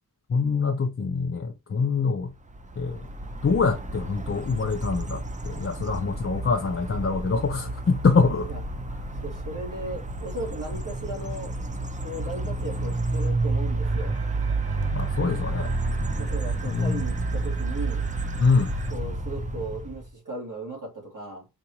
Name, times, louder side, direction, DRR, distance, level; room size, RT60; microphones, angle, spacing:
voice 1, 0.3-2.3 2.8-3.1 3.4-8.5 14.9-15.7 16.6-17.0 18.4-18.7, left 4 dB, 40° left, 0.4 m, -24 dB
sound 1, 2.5-20.1, right 2 dB, 20° right, 0.4 m, -30 dB
voice 2, 9.2-11.5 12.0-14.1 16.2-18.1 18.9-21.5, right 1 dB, 55° right, 1.9 m, -36 dB
sound 2, 13.8-18.9, right 6 dB, 90° right, 1.0 m, -46 dB
3.9 x 2.4 x 2.9 m
wide cardioid pair, 80°, 37 cm